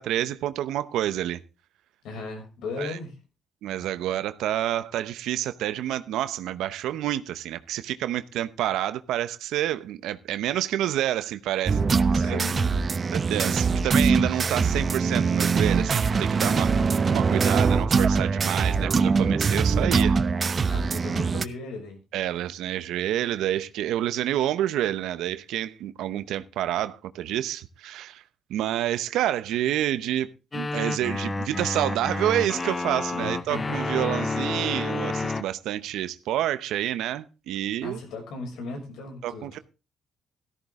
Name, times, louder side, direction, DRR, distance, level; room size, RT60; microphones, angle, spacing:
voice 1, 0.0-1.4 2.8-3.0 3.6-11.8 12.1-12.4 13.1-20.2 22.1-28.2 28.5-38.0 39.2-39.6, right 12 dB, 85° right, 0.8 m, -28 dB
voice 2, 2.0-3.1 12.1-12.8 20.7-22.0 33.2-34.0 37.8-39.6, left 3 dB, 85° left, 6.3 m, -37 dB
sound 1, 11.7-21.4, right 5 dB, 40° right, 0.9 m, -23 dB
sound 2, 30.5-35.4, left 3 dB, 25° left, 0.7 m, -29 dB
14.0 x 13.5 x 3.7 m
cardioid pair, 90°, 0 cm